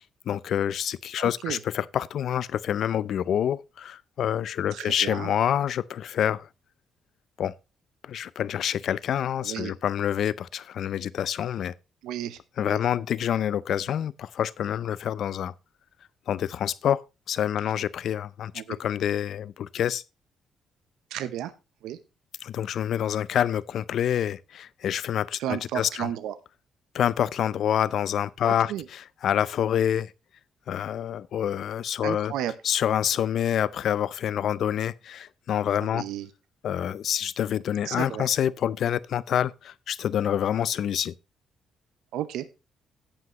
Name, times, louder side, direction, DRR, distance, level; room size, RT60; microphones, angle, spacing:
voice 1, 0.3-6.5 7.4-7.5 8.0-11.7 12.6-15.5 16.3-17.0 17.3-18.5 18.8-20.0 22.4-26.1 26.9-28.7 29.2-30.1 30.7-32.3 32.6-36.0 36.6-41.1, left 10 dB, 70° left, 0.5 m, -27 dB
voice 2, 1.2-1.6 4.7-5.3 9.4-9.7 12.0-12.8 18.5-18.8 21.1-21.5 21.8-22.0 25.4-26.4 28.4-28.9 32.0-32.5 35.8-36.3 37.8-38.3 42.1-42.5, right 11 dB, 90° right, 0.8 m, -33 dB
17.0 x 5.8 x 3.0 m
cardioid pair, 90°, 0 cm